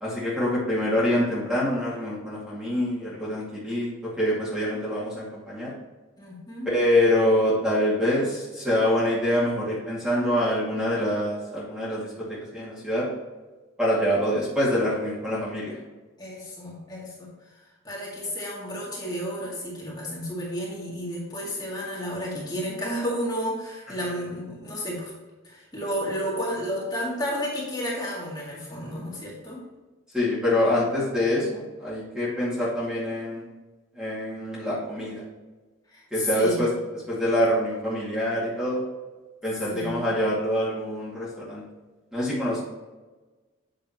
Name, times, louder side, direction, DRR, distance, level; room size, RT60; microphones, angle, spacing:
voice 1, 0.0-5.7 6.7-13.1 13.8-15.8 30.1-33.4 34.0-35.2 36.1-36.7 37.1-38.8 39.4-41.6 42.1-42.6, left 1 dB, 5° right, -8 dB, 2.2 m, -25 dB
voice 2, 6.2-6.7 16.2-25.1 25.4-29.6 35.9-36.6 39.7-40.0, equal, 20° left, -6 dB, 2.3 m, -32 dB
8.1 x 6.5 x 3.0 m, 1.2 s
head